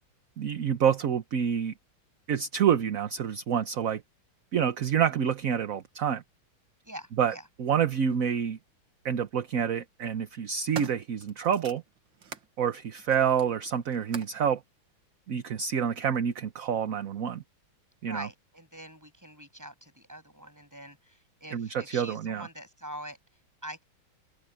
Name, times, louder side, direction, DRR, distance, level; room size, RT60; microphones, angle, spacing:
voice 1, 0.4-1.7 2.3-4.0 4.5-6.2 7.2-8.6 9.0-11.8 12.6-14.6 15.3-17.4 18.0-18.3 21.5-22.5, right 8 dB, 50° right, 1.2 m, -27 dB
voice 2, 6.8-7.4 18.1-23.2 23.6-23.8, equal, 10° right, 7.3 m, -44 dB
sound 1, 8.1-8.2 9.3-9.7 10.2-12.5 13.0-14.5 15.3-15.4, right 8 dB, 65° right, 2.3 m, -43 dB
open air
omnidirectional pair, 2.2 m